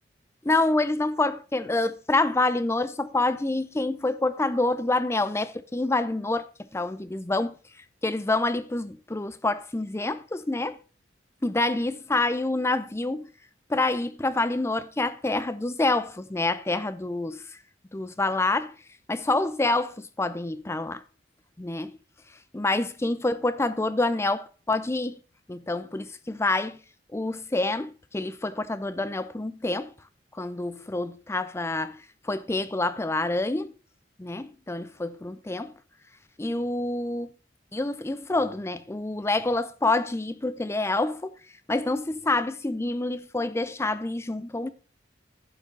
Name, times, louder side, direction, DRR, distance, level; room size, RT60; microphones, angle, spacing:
voice 1, 0.4-6.5 6.7-7.6 8.0-10.8 11.4-13.3 13.7-17.6 17.9-18.7 19.1-21.0 21.6-22.0 22.5-25.2 25.5-26.8 27.1-29.9 30.3-33.7 34.2-35.7 36.4-37.3 37.7-41.3 41.7-44.7, left 2 dB, 15° left, 0.5 m, -27 dB
11.0 x 5.0 x 5.3 m
head